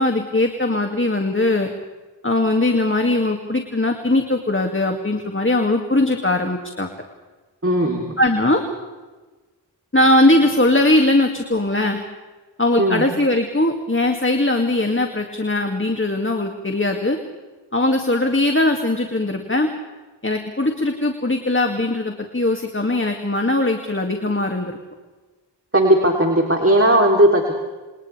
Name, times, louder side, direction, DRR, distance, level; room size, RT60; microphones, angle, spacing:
voice 1, 0.0-1.7 2.2-6.9 8.2-8.6 9.9-12.0 12.6-17.2 17.7-19.7 20.2-24.8, left 2 dB, 30° left, 3 dB, 2.4 m, -20 dB
voice 2, 7.6-8.1 12.8-13.0 25.7-27.5, right 1 dB, 30° right, 1 dB, 3.4 m, -16 dB
29.0 x 28.0 x 3.5 m, 1.2 s
wide cardioid pair, 45°, 42 cm